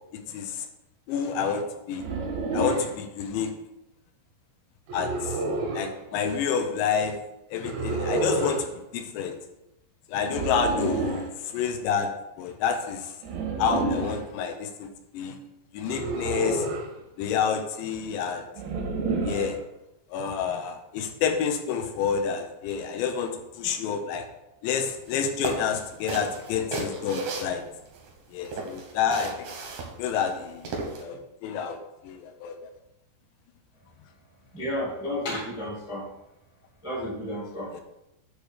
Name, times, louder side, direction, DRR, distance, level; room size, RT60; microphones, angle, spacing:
voice 1, 0.3-0.7 1.1-2.0 2.5-3.5 4.9-5.4 5.7-7.2 7.5-8.7 8.9-9.4 10.1-12.1 12.4-13.1 13.6-14.9 15.1-15.4 15.7-16.7 17.2-18.5 19.2-19.6 20.1-23.3 23.6-24.3 24.6-27.6 28.3-29.3 30.0-30.7 31.0-31.8 32.0-32.7 37.7-37.8, left 6 dB, 80° left, 5 dB, 3.0 m, -28 dB
sound 1, 2.0-2.9 4.9-5.9 7.6-8.6 10.3-11.3 13.2-14.2 15.9-16.9 18.6-19.6, right 2 dB, 85° right, 3.4 m, -29 dB
sound 2, 25.1-25.2 25.4-28.1 28.4-31.0, right 3 dB, 65° right, 1.8 m, -35 dB
voice 2, 34.5-36.0 36.8-37.8, left 1 dB, 5° right, -7 dB, 0.4 m, -32 dB
8.7 x 3.3 x 6.5 m, 0.89 s
omnidirectional pair, 5.0 m